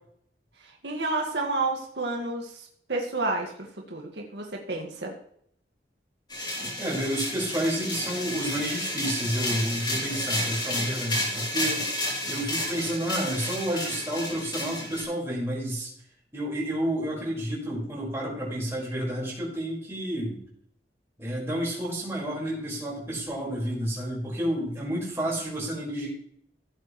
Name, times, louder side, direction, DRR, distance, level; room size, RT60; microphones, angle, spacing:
voice 1, 0.8-5.1, right 2 dB, 80° right, 0 dB, 2.1 m, -30 dB
sound 1, 6.3-15.0, left 1 dB, 25° left, 4.0 m, -31 dB
voice 2, 6.8-11.9 12.3-15.9 16.3-20.4 21.2-26.1, right 1 dB, 15° right, -5 dB, 5.6 m, -30 dB
16.5 x 8.1 x 3.3 m, 0.66 s
head